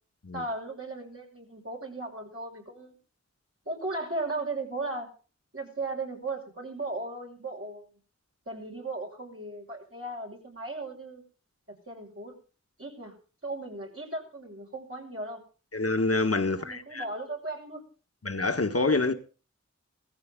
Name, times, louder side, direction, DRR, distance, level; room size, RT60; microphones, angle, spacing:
voice 1, 0.3-2.9 3.7-5.1 5.5-7.9 8.5-11.2 11.7-12.4 12.8-13.2 13.4-15.4 16.5-17.8, right 2 dB, 50° right, 5.8 m, -36 dB
voice 2, 15.7-17.0 18.2-19.1, left 3 dB, 55° left, 1.5 m, -26 dB
16.0 x 14.5 x 3.7 m
wide cardioid pair, 45°, 29 cm